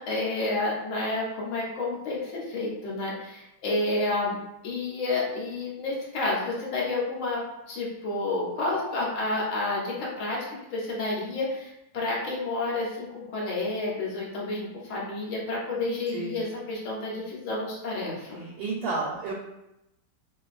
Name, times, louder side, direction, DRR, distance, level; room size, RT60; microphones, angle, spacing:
voice 1, 0.0-4.4 4.6-10.4 10.7-18.5, left 2 dB, 55° left, -4 dB, 0.9 m, -30 dB
voice 2, 18.6-19.3, right 3 dB, 90° right, -3 dB, 1.3 m, -30 dB
2.7 x 2.5 x 2.4 m, 0.89 s
omnidirectional pair, 2.0 m